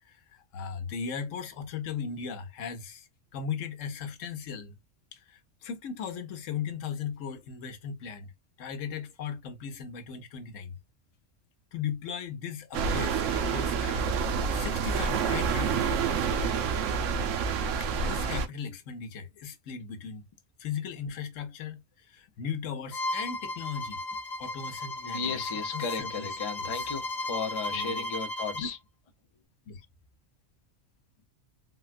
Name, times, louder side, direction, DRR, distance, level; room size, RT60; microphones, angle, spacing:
voice 1, 0.1-4.8 5.1-8.3 8.6-10.8 11.7-16.8 17.8-20.2 20.6-24.0 24.4-25.4 25.7-26.3 26.6-26.9 27.7-28.1 28.5-28.7 29.7-29.9, left 7 dB, 85° left, 1.1 m, -38 dB
sound 1, 12.7-18.5, right 6 dB, 80° right, 1.0 m, -28 dB
Bowed string instrument, 22.9-28.7, left 2 dB, 60° left, 1.0 m, -35 dB
voice 2, 25.0-28.8, left 5 dB, 30° left, 0.6 m, -35 dB
3.7 x 2.2 x 2.4 m
omnidirectional pair, 1.3 m